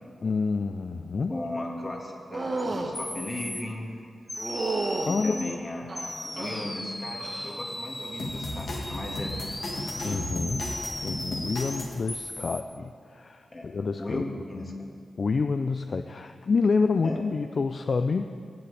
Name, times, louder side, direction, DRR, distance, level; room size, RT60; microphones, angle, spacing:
voice 1, 0.2-1.3 5.1-5.6 10.0-10.7 11.0-14.2 15.2-18.3, left 4 dB, 55° left, 8 dB, 0.3 m, -28 dB
voice 2, 1.3-3.9 5.0-9.3 13.5-14.7 17.0-17.2, left 1 dB, 35° left, 0 dB, 1.7 m, -36 dB
sound 1, 2.3-2.9 4.4-5.1 5.9-6.7 7.2-7.6 8.0-8.4 10.0-10.2, right 3 dB, 45° right, 1.1 m, -32 dB
sound 2, 2.6-2.7 2.9-3.6 4.3-5.6 6.0-12.6, left 1 dB, 10° left, 0.7 m, -37 dB
sound 3, 8.2-12.0, left 1 dB, 70° left, 1.6 m, -35 dB
16.5 x 7.6 x 3.3 m, 2.3 s
cardioid pair, 80°, 0 cm